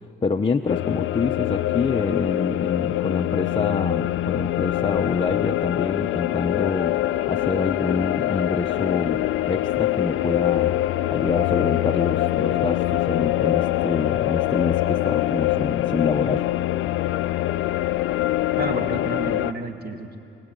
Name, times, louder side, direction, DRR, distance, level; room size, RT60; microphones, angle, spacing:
voice 1, 0.2-7.0 7.3-10.8 11.1-16.5, left 4 dB, 25° left, 2 dB, 0.8 m, -26 dB
sound 1, 0.7-19.5, left 15 dB, 85° left, 0.5 m, -24 dB
voice 2, 18.6-20.2, right 2 dB, 50° right, 5 dB, 2.3 m, -31 dB
25.0 x 18.5 x 9.1 m, 2.9 s
cardioid pair, 90°, 20 cm